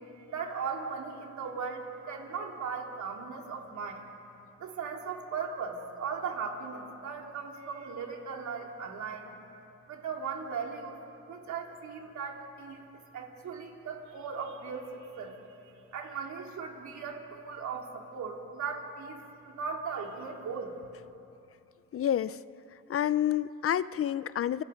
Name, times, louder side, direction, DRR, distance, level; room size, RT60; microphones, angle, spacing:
voice 1, 0.2-4.0 4.6-9.3 9.9-11.0 11.3-12.8 13.1-15.4 15.9-20.9, right 5 dB, 70° right, 1 dB, 3.5 m, -38 dB
voice 2, 21.9-22.4 22.7-24.6, left 10 dB, 50° left, 17 dB, 0.6 m, -29 dB
30.0 x 24.0 x 5.2 m, 2.8 s
cardioid pair, 90°, 30 cm